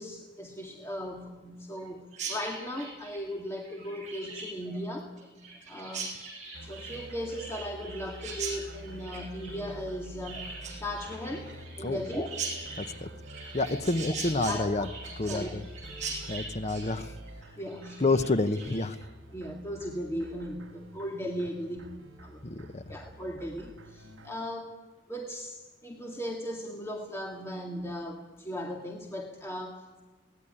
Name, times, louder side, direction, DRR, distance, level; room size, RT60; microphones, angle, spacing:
voice 1, 0.0-5.2 5.7-6.1 6.6-12.3 14.5-14.9 15.2-15.5 16.0-16.3 17.6-18.0 19.3-22.4 22.9-24.8 25.1-30.0, equal, 15° left, 1 dB, 1.9 m, -37 dB
Chirp tweet, 2.1-19.0, right 4 dB, 35° right, 6.5 m, -41 dB
sound 1, 6.5-24.4, equal, 75° right, 3.1 m, -47 dB
voice 2, 12.8-13.1 13.5-14.9 15.2-15.6 16.3-17.1 18.0-19.0 22.4-22.8, left 2 dB, 35° left, 11 dB, 0.9 m, -28 dB
23.0 x 18.5 x 9.9 m, 1.3 s
head